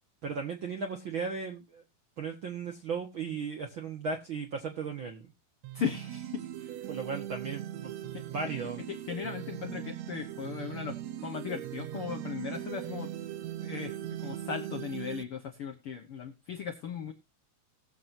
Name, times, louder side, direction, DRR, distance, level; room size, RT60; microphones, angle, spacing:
voice 1, 0.2-1.8 2.2-5.3 6.9-8.0 8.3-8.8, right 5 dB, 60° right, 1.3 m, -36 dB
sound 1, 5.6-15.2, right 12 dB, 85° right, 1.5 m, -40 dB
voice 2, 5.7-6.8 8.1-8.3 8.9-13.1 13.6-14.0 14.2-17.1, left 7 dB, 75° left, 1.2 m, -37 dB
20.0 x 7.5 x 2.7 m
omnidirectional pair, 4.2 m